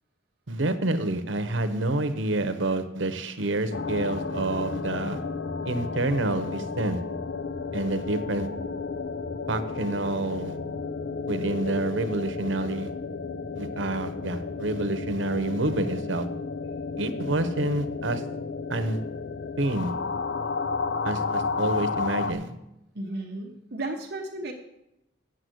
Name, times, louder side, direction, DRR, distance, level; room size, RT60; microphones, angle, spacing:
voice 1, 0.5-5.2 5.7-7.0 7.7-8.5 9.5-10.5 11.3-12.9 13.5-16.3 17.0-18.2 18.7-19.0 19.6-19.9 21.0-22.5, right 2 dB, 90° right, 9 dB, 0.9 m, -28 dB
sound 1, 3.7-22.3, left 4 dB, 65° left, 0.6 m, -32 dB
voice 2, 22.9-24.5, right 2 dB, 60° right, 0 dB, 1.0 m, -34 dB
7.9 x 7.4 x 7.9 m, 0.89 s
head